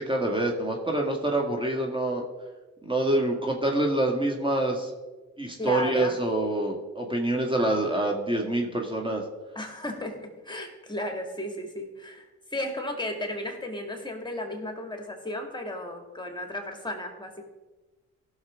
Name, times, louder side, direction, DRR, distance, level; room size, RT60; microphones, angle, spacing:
voice 1, 0.0-2.2 2.8-4.9 5.4-9.2, right 1 dB, 15° right, 1 dB, 1.9 m, -26 dB
voice 2, 5.6-6.2 9.5-17.4, left 1 dB, 15° left, 3 dB, 2.2 m, -34 dB
16.0 x 6.6 x 3.7 m, 1.2 s
hypercardioid pair, 50°, 34 cm